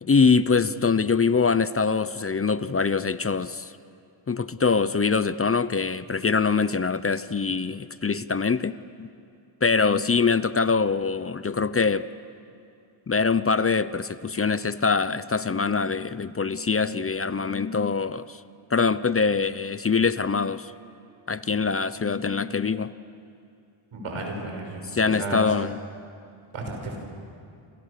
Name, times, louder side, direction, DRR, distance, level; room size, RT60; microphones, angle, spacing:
voice 1, 0.0-3.7 4.3-9.1 9.6-12.1 13.1-18.4 18.7-20.7 21.3-22.9 24.9-25.8, left 5 dB, 30° left, 15 dB, 0.7 m, -24 dB
voice 2, 23.9-25.4 26.5-27.0, right 2 dB, 90° right, 2 dB, 5.9 m, -33 dB
28.0 x 27.0 x 6.7 m, 2.5 s
cardioid pair, 80°, 50 cm